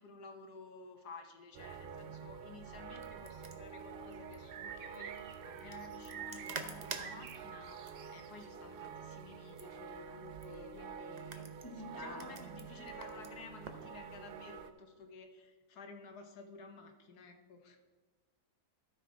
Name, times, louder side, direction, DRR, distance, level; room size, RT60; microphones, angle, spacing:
voice 1, 0.0-17.8, left 4 dB, 80° left, 5 dB, 1.4 m, -53 dB
sound 1, 1.5-14.7, right 7 dB, 85° right, 0.5 m, -47 dB
sound 2, 2.8-13.9, right 4 dB, 45° right, 0.6 m, -50 dB
voice 2, 11.6-12.4, left 1 dB, 15° left, 0 dB, 1.5 m, -46 dB
13.0 x 5.8 x 4.7 m, 1.3 s
omnidirectional pair, 1.7 m